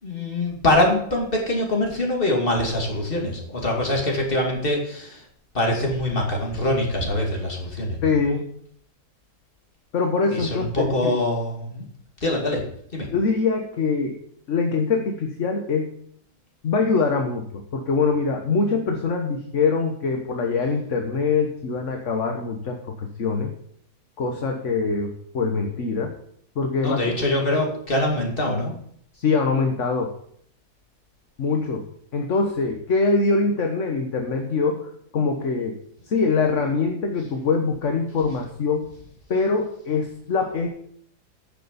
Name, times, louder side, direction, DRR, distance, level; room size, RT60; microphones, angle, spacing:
voice 1, 0.0-5.2 5.5-8.1 10.3-11.8 12.2-12.7 12.9-13.1 26.8-28.7, left 1 dB, 30° left, 0 dB, 2.7 m, -24 dB
voice 2, 8.0-8.5 9.9-11.1 13.1-14.2 14.5-15.9 16.6-23.5 24.2-26.1 26.6-27.1 29.2-30.1 31.4-31.8 32.1-35.8 36.1-38.9 39.3-40.7, left 4 dB, 50° left, 3 dB, 1.4 m, -23 dB
9.9 x 6.8 x 6.9 m, 0.65 s
omnidirectional pair, 1.8 m